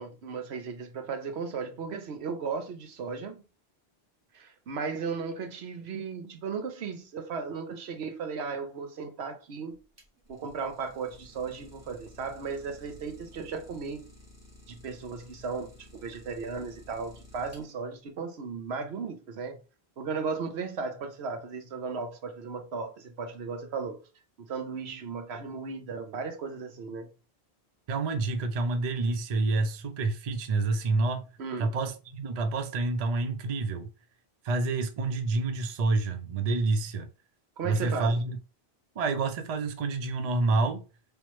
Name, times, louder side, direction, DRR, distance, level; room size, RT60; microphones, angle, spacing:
voice 1, 0.0-3.4 4.3-9.8 10.3-14.0 14.7-19.6 20.0-24.0 24.4-27.1 31.4-31.7 37.6-38.1, right 5 dB, 85° right, 1.0 m, -36 dB
Idling, 9.8-18.0, left 1 dB, 15° right, 1.3 m, -53 dB
voice 2, 27.9-31.3 31.6-33.9 34.4-37.1 37.6-38.4 39.0-40.8, right 3 dB, 50° right, 0.5 m, -28 dB
3.4 x 3.0 x 3.0 m
omnidirectional pair, 1.0 m